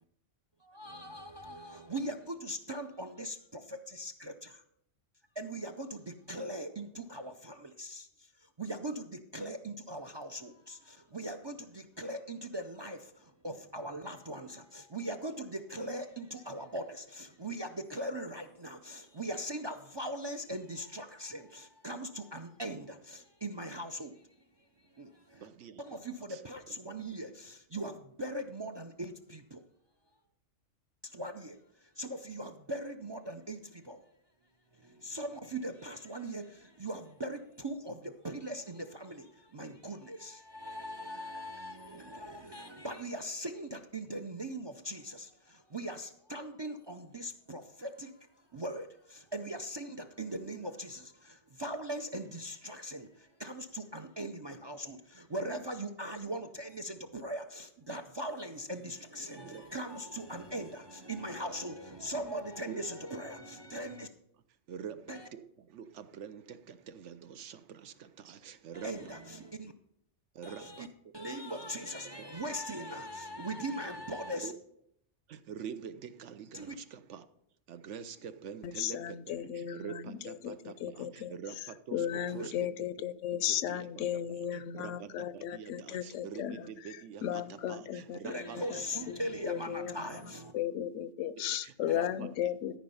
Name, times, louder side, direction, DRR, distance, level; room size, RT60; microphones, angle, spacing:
voice 1, 0.6-4.6 5.4-24.3 24.8-25.5 25.8-29.6 31.0-34.0 34.7-48.1 48.5-64.1 65.1-65.3 68.7-69.7 70.4-70.9 71.1-74.5 76.5-76.7 82.4-82.5 88.2-90.5 91.9-92.1, right 1 dB, 40° right, 0.4 m, -40 dB
voice 2, 25.4-26.0 26.3-26.4 26.7-27.2 27.8-27.9 59.4-59.6 62.7-62.8 64.7-69.1 70.3-70.9 71.5-71.7 72.1-72.3 74.3-74.5 75.3-77.3 77.7-83.0 83.3-88.8 91.4-92.5, right 7 dB, 75° right, 1.0 m, -46 dB
voice 3, 78.6-81.3 81.9-86.6 87.2-92.8, left 10 dB, 85° left, 0.9 m, -36 dB
13.5 x 5.2 x 5.5 m
omnidirectional pair, 1.2 m